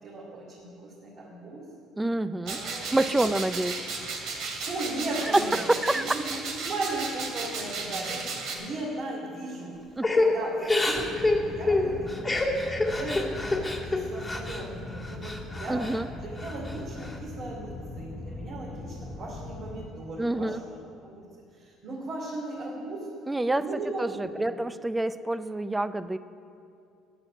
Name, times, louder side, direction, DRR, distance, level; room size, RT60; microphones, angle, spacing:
voice 1, 0.0-1.6 2.4-2.9 4.6-9.7 10.1-12.2 12.6-13.4 13.8-15.9 16.2-21.3 21.6-23.1 23.6-24.5, right 2 dB, 50° right, -5 dB, 2.9 m, -37 dB
voice 2, 2.0-2.6 2.9-3.8 5.2-6.2 10.0-10.1 15.7-16.1 20.2-20.6 23.3-23.7 24.0-26.2, right 1 dB, 10° right, 13 dB, 0.4 m, -27 dB
sound 1, 2.4-8.5, right 4 dB, 65° right, 2.5 m, -34 dB
Crying sobbing / Breathing, 10.0-14.6 15.0-16.0 16.4-17.1, left 2 dB, 5° left, 1.7 m, -27 dB
sound 2, 10.9-19.9, left 2 dB, 25° left, 0.8 m, -40 dB
10.5 x 9.1 x 9.9 m, 2.5 s
cardioid pair, 140°, 0 cm